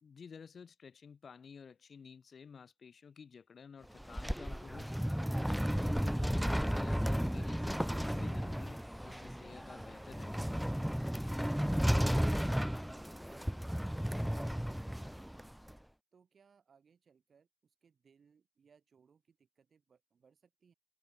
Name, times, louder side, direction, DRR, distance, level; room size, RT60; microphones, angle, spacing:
voice 1, 0.0-5.2 5.7-10.6, left 6 dB, 80° left, 0.7 m, -53 dB
sound 1, 3.8-15.7, equal, 5° right, 0.4 m, -34 dB
voice 2, 14.0-15.5 16.1-20.7, right 6 dB, 85° right, 3.0 m, -66 dB
wide cardioid pair, 90°, 0 cm